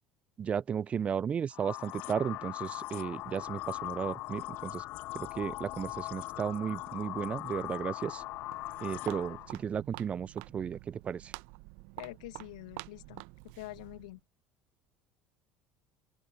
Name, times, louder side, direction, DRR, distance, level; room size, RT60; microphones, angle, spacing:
voice 1, 0.4-4.8 5.1-8.2 8.8-11.3, right 7 dB, 35° right, 0.5 m, -34 dB
sound 1, 1.5-9.6, left 19 dB, 55° left, 0.4 m, -40 dB
Walk footsteps, 8.1-14.2, right 30 dB, 65° right, 0.8 m, -48 dB
voice 2, 12.0-13.2 13.5-14.2, left 21 dB, 70° left, 1.3 m, -45 dB
open air
figure-of-eight pair, 65°, 4 cm